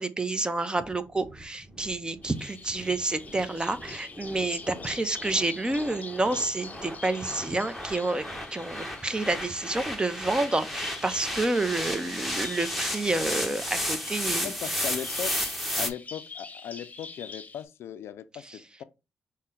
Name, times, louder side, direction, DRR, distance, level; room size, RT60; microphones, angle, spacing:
voice 1, 0.0-8.2 8.5-14.5, right 2 dB, 20° right, 0.6 m, -29 dB
sound 1, 0.8-15.9, equal, ahead, 1.0 m, -34 dB
Bird vocalization bird call bird song, 2.2-17.6, left 4 dB, 35° left, 0.8 m, -45 dB
voice 2, 14.4-15.4 15.8-18.8, left 9 dB, 75° left, 0.4 m, -38 dB
5.4 x 2.1 x 3.7 m
supercardioid pair, 60°, 4 cm